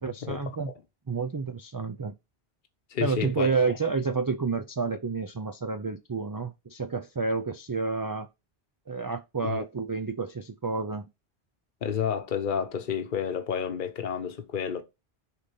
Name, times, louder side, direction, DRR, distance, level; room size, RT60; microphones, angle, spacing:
voice 1, 0.0-0.7 1.1-2.1 3.0-8.3 8.9-11.1, right 4 dB, 35° right, 0.3 m, -30 dB
voice 2, 2.9-3.5 9.4-9.6 11.8-14.8, left 7 dB, 55° left, 1.0 m, -30 dB
6.7 x 3.9 x 5.6 m
omnidirectional pair, 1.0 m